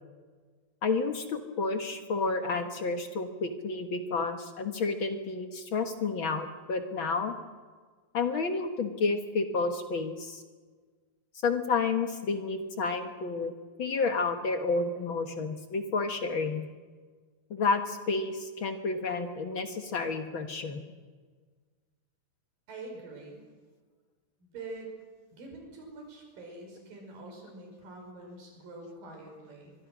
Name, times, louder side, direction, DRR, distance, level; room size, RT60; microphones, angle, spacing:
voice 1, 0.8-7.3 8.1-10.4 11.4-13.5 13.8-16.6 17.5-20.8, left 4 dB, 60° left, 6 dB, 1.3 m, -30 dB
voice 2, 22.7-23.4 24.4-24.9 25.3-29.8, right 2 dB, 65° right, 1 dB, 7.3 m, -45 dB
24.5 x 23.0 x 6.2 m, 1.5 s
omnidirectional pair, 4.3 m